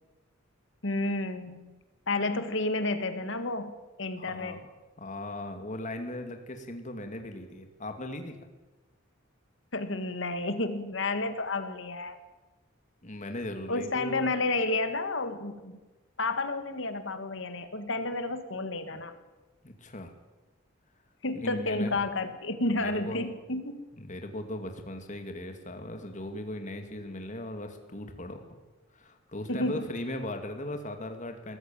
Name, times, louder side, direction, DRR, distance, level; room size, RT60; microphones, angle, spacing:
voice 1, 0.8-1.7 2.1-3.7 4.0-4.6 9.7-12.2 13.7-15.8 16.2-19.2 21.2-23.8 29.5-29.9, left 2 dB, 65° left, 9 dB, 2.0 m, -31 dB
voice 2, 4.1-4.6 5.0-8.3 13.0-14.3 19.6-20.1 21.4-21.9 22.7-23.2 24.0-28.6 28.9-31.6, left 1 dB, 40° left, 6 dB, 2.4 m, -38 dB
21.5 x 14.5 x 9.1 m, 1.1 s
head